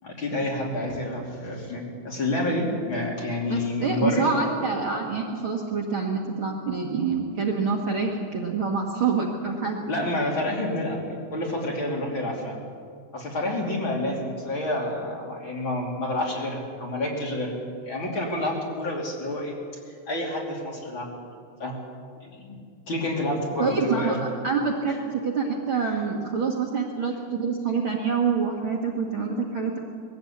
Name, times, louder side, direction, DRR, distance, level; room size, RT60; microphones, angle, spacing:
voice 1, 0.0-4.3 9.9-12.6 13.1-17.5 17.9-19.6 20.1-21.1 21.6-21.8 22.3-22.6 22.9-24.2, left 1 dB, 40° left, -1 dB, 3.4 m, -28 dB
voice 2, 3.5-9.8 23.6-24.2 24.4-29.8, right 5 dB, 50° right, 0 dB, 1.9 m, -26 dB
21.0 x 15.5 x 8.5 m, 2.2 s
omnidirectional pair, 3.8 m